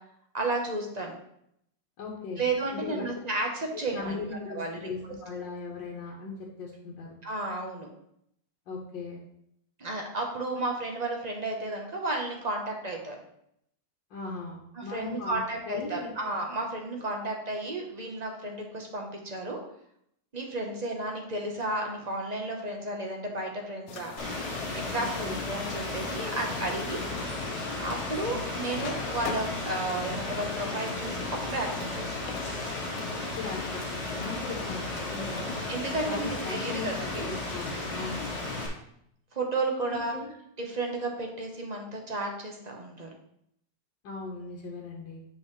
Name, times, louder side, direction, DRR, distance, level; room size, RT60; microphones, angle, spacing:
voice 1, 0.3-1.2 2.4-4.9 7.2-7.9 9.8-13.2 14.8-19.6 20.3-24.1 24.7-27.0 27.8-32.3 35.3-37.3 39.3-40.1 40.6-43.1, right 2 dB, 30° right, 1 dB, 0.9 m, -33 dB
voice 2, 2.0-2.5 2.7-3.1 3.7-7.2 8.7-9.2 14.1-15.4 15.7-16.1 25.0-25.5 33.2-35.5 36.1-36.9 37.2-38.3 39.8-40.3 44.0-45.2, left 4 dB, 85° left, -2 dB, 1.7 m, -38 dB
sound 1, 23.9-33.1, left 6 dB, 70° left, 0.8 m, -43 dB
Rain, 24.2-38.7, left 2 dB, 35° left, 1.6 m, -34 dB
7.6 x 5.5 x 3.2 m, 0.73 s
omnidirectional pair, 1.9 m